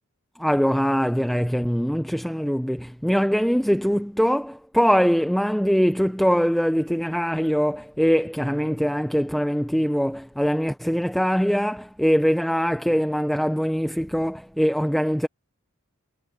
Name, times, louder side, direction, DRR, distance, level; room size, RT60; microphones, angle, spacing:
voice 1, 0.4-15.3, equal, ahead, 0.7 m, -22 dB
head